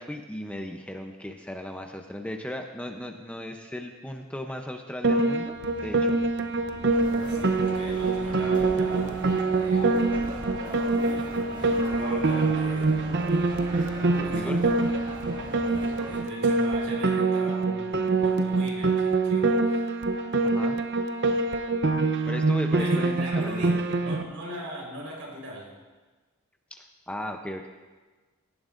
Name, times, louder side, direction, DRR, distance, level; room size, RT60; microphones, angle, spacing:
voice 1, 0.0-5.6 5.8-6.2 14.2-14.6 20.4-20.8 22.3-23.8 26.7-27.7, left 1 dB, 5° left, 3 dB, 0.7 m, -36 dB
Piano, 5.0-24.2, right 3 dB, 55° right, 0.7 m, -25 dB
sound 1, 5.4-16.5, equal, 10° right, 2.9 m, -49 dB
sound 2, 6.9-16.2, right 1 dB, 40° right, 2.0 m, -40 dB
voice 2, 7.3-13.5 14.1-14.8 15.3-15.5 16.0-19.9 22.2-22.4 22.8-25.7, equal, 75° right, -2 dB, 4.3 m, -40 dB
17.5 x 15.0 x 2.6 m, 1.3 s
head